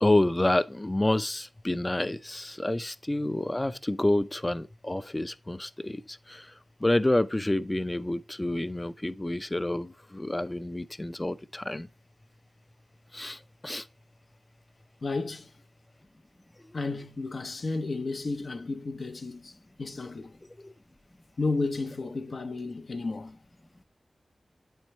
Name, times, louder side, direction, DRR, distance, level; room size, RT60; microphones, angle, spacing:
voice 1, 0.0-6.5 6.8-11.9 13.1-13.9 20.6-20.7, left 1 dB, 25° left, 0.4 m, -28 dB
voice 2, 15.0-15.5 16.7-19.5 19.8-20.3 21.4-23.4, left 3 dB, 75° left, 0.7 m, -32 dB
8.1 x 4.5 x 3.1 m
cardioid pair, 45°, 0 cm